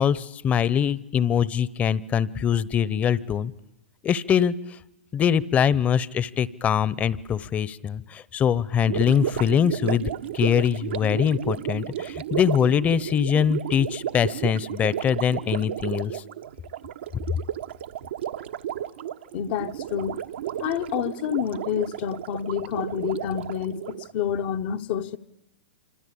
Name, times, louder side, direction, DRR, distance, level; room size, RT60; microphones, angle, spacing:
voice 1, 0.0-3.5 4.0-4.5 5.1-16.2, left 8 dB, 25° left, 1.0 m, -23 dB
Gurgling, 8.9-24.1, right 11 dB, 70° right, 1.2 m, -33 dB
voice 2, 19.3-20.2 20.6-25.2, left 9 dB, 50° left, 1.0 m, -28 dB
27.0 x 25.5 x 8.6 m
hypercardioid pair, 120°, 6 cm